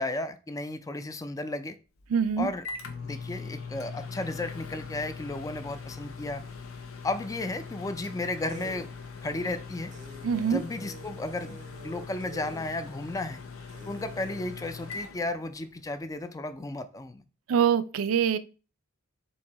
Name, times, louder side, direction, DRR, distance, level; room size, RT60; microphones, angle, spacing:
voice 1, 0.0-1.8 2.4-2.6 3.0-6.4 7.0-8.9 9.2-9.9 10.5-11.6 11.8-13.4 13.9-17.2, left 2 dB, 15° left, 0.3 m, -34 dB
Microwave oven, 2.0-16.0, left 4 dB, 80° left, 0.7 m, -42 dB
voice 2, 2.1-2.5 10.2-10.6 17.5-18.4, right 7 dB, 85° right, 0.4 m, -24 dB
sound 1, 7.7-7.8 8.0-8.1 8.5-8.9 9.4-9.5 9.9-12.7 13.2-13.3 13.7-14.5, right 2 dB, 35° right, 0.6 m, -46 dB
4.6 x 2.7 x 4.1 m
head